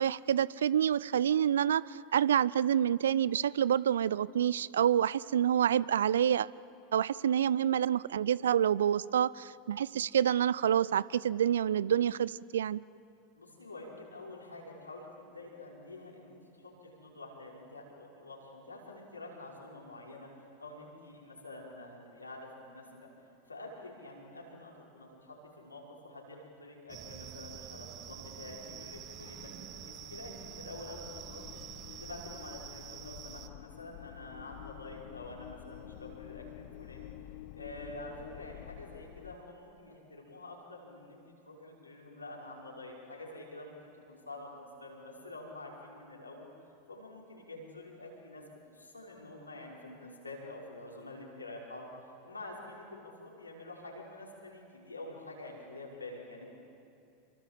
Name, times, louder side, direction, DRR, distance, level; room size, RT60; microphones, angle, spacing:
voice 1, 0.0-6.5 6.9-12.8, right 9 dB, 70° right, 21 dB, 0.5 m, -28 dB
voice 2, 13.4-20.3 20.6-23.1 23.5-29.5 30.1-37.1 37.5-46.5 46.9-48.4 48.7-56.5, left 2 dB, 85° left, -2 dB, 5.7 m, -47 dB
sound 1, 26.9-33.5, right 11 dB, 40° right, 1.3 m, -47 dB
sound 2, 27.6-39.4, left 13 dB, 55° left, 1.1 m, -50 dB
28.5 x 24.0 x 7.7 m, 2.6 s
figure-of-eight pair, 85°, 0 cm